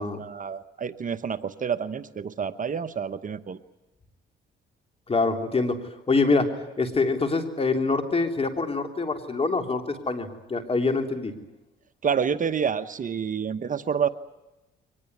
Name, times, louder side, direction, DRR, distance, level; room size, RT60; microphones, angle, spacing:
voice 1, 0.0-3.6 12.0-14.1, right 7 dB, 40° right, 12 dB, 1.0 m, -28 dB
voice 2, 5.1-5.8 6.1-6.5 6.8-11.3, left 3 dB, 30° left, 6 dB, 3.4 m, -25 dB
23.5 x 20.0 x 9.6 m, 1.0 s
cardioid pair, 90°, 20 cm